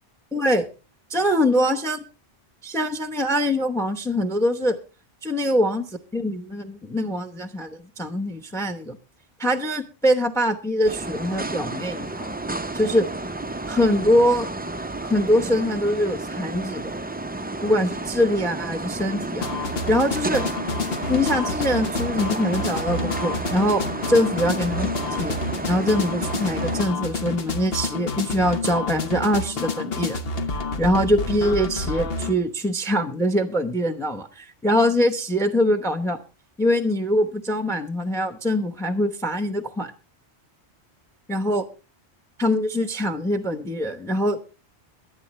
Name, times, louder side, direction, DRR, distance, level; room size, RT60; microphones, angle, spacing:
voice 1, 0.3-0.7 1.1-2.0 2.6-4.8 5.2-9.0 9.4-12.4 12.7-13.1 13.6-14.5 15.0-17.0 17.6-19.5 19.9-20.4 21.1-25.4 25.6-30.2 30.8-36.2 36.6-39.9 41.3-41.7 42.4-44.4, equal, 5° left, 9 dB, 0.8 m, -23 dB
sound 1, 10.8-26.9, right 2 dB, 15° right, 0.3 m, -31 dB
sound 2, 19.4-32.3, left 3 dB, 60° left, 1.3 m, -29 dB
22.0 x 8.8 x 3.2 m, 0.33 s
omnidirectional pair, 1.1 m